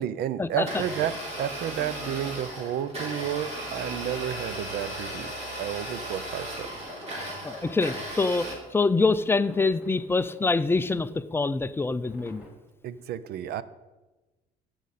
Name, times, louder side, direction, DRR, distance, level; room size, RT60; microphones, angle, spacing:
voice 1, 0.0-6.7 12.8-13.6, right 10 dB, 70° right, 16 dB, 0.6 m, -31 dB
Domestic sounds home sounds, 0.5-8.5, equal, 40° right, 3.3 m, -36 dB
sound 1, 3.6-12.5, left 1 dB, 5° right, 3.1 m, -53 dB
voice 2, 7.4-12.4, left 3 dB, 15° left, 13 dB, 0.4 m, -25 dB
15.0 x 6.3 x 4.2 m, 1.1 s
cardioid pair, 110°, 17 cm